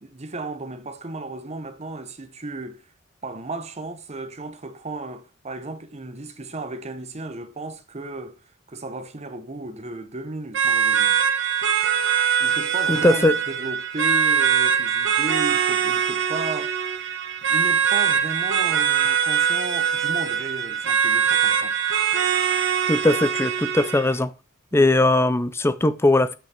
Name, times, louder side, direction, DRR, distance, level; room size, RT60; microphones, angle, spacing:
voice 1, 0.0-2.8 3.2-11.2 12.4-16.8 17.5-21.8 24.7-25.1, right 2 dB, 30° right, 0.9 m, -34 dB
sound 1, 10.5-24.1, right 8 dB, 60° right, 1.4 m, -22 dB
voice 2, 12.9-13.4 22.9-24.3 24.7-26.3, left 2 dB, 10° left, 0.4 m, -19 dB
8.5 x 5.8 x 4.3 m
head